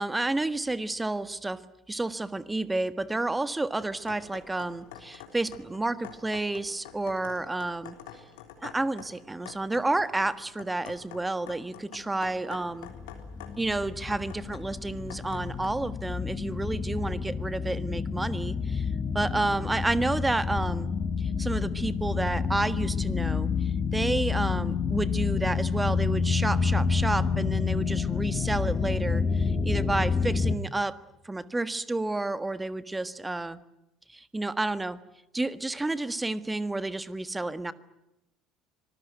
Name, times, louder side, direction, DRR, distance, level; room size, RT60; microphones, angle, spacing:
voice 1, 0.0-1.6 1.9-8.0 8.6-12.9 13.6-18.9 19.1-20.9 21.2-31.0 31.2-33.6 34.1-35.0 35.3-37.7, right 2 dB, 15° right, 14 dB, 1.5 m, -30 dB
sound 1, 3.8-15.7, left 10 dB, 70° left, 3.5 m, -48 dB
sound 2, 12.9-30.6, left 5 dB, 30° left, 1.7 m, -29 dB
26.0 x 21.0 x 9.3 m, 0.88 s
figure-of-eight pair, 60°, 0 cm